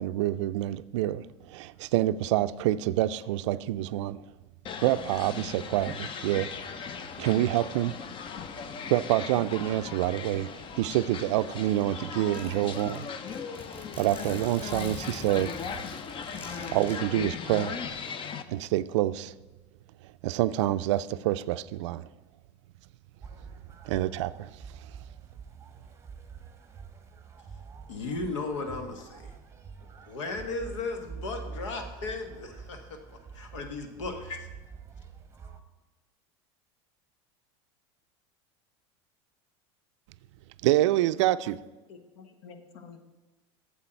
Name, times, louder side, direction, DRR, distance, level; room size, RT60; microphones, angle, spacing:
voice 1, 0.0-4.2 4.8-6.5 7.2-8.0 8.9-13.1 14.0-15.6 16.7-17.8 18.5-19.3 20.2-22.1 23.8-24.5 40.6-41.6, right 14 dB, 75° right, 15 dB, 0.4 m, -27 dB
sound 1, 4.7-18.4, left 6 dB, 35° left, 0.6 m, -38 dB
Zipper (clothing), 12.3-17.0, equal, 15° left, 1.7 m, -46 dB
sound 2, 23.2-35.6, right 5 dB, 20° right, 0.9 m, -46 dB
voice 2, 27.9-29.3 30.1-34.5, left 3 dB, 85° left, 6 dB, 1.3 m, -36 dB
voice 3, 41.9-43.0, left 5 dB, 65° left, 8 dB, 1.2 m, -49 dB
8.4 x 7.2 x 4.5 m, 1.2 s
supercardioid pair, 105°, 15 cm